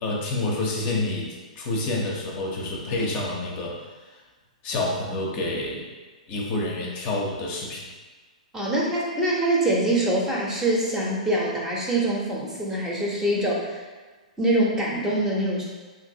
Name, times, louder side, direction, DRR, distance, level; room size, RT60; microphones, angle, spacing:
voice 1, 0.0-3.8 4.1-4.2 4.6-5.8 6.3-7.9, left 2 dB, 35° left, -2 dB, 0.5 m, -28 dB
voice 2, 8.5-13.8 14.4-15.6, right 1 dB, 10° right, -4 dB, 0.6 m, -24 dB
2.9 x 2.5 x 2.7 m, 1.3 s
figure-of-eight pair, 115°, 4 cm